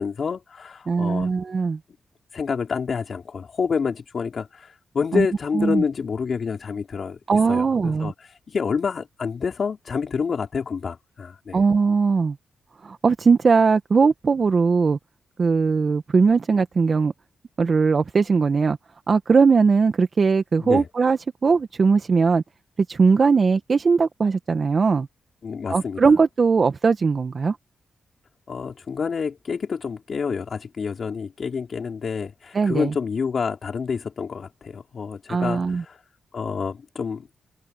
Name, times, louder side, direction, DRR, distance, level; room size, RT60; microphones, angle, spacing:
voice 1, 0.0-1.3 2.3-7.2 7.5-11.6 20.6-20.9 25.4-26.0 28.5-36.0 36.3-37.4, left 5 dB, 60° left, 4.4 m, -28 dB
voice 2, 0.9-1.8 5.1-5.3 5.5-5.8 7.3-8.1 11.5-12.4 12.8-15.0 15.4-17.1 17.6-18.8 19.1-22.4 22.9-25.1 25.7-27.6 32.5-32.9 35.3-35.8, right 5 dB, 50° right, 1.3 m, -19 dB
supercardioid pair, 50°, 0 cm